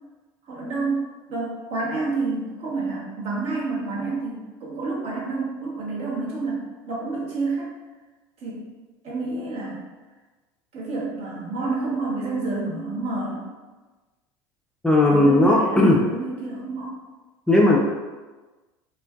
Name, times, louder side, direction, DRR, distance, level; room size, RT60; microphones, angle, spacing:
voice 1, 0.4-7.7 8.4-8.7 9.0-9.9 10.7-13.5 15.1-17.0, right 3 dB, 55° right, -5 dB, 0.9 m, -29 dB
voice 2, 14.8-16.0 17.5-17.8, left 2 dB, 5° left, -3 dB, 0.3 m, -16 dB
2.5 x 2.2 x 2.2 m, 1.2 s
hypercardioid pair, 80°, 12 cm